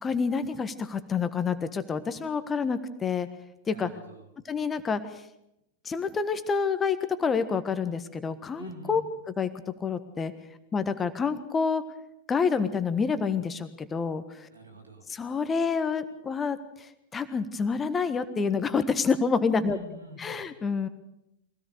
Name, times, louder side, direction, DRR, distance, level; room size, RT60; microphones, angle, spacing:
voice 1, 0.0-3.3 3.7-3.9 4.5-5.0 5.8-9.0 9.4-10.3 10.7-11.8 12.3-14.5 15.1-19.8 20.2-20.9, left 5 dB, 20° left, 11 dB, 1.4 m, -28 dB
voice 2, 3.7-4.3 8.6-9.0 14.5-15.1 19.6-20.5, right 1 dB, 80° right, 3 dB, 3.3 m, -45 dB
23.0 x 17.0 x 6.6 m, 0.84 s
figure-of-eight pair, 90°, 0 cm